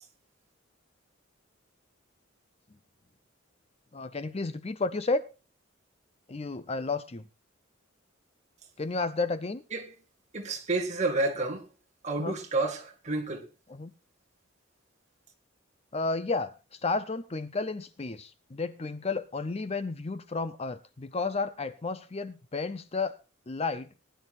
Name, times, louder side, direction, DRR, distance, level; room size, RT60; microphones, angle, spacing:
voice 1, 3.9-5.2 6.3-7.3 8.8-9.6 12.2-12.3 13.7-13.9 15.9-23.2 23.5-23.9, left 3 dB, 30° left, 0.6 m, -32 dB
voice 2, 10.3-11.7 12.0-13.5, right 2 dB, 35° right, 1.9 m, -30 dB
20.0 x 10.5 x 2.5 m
head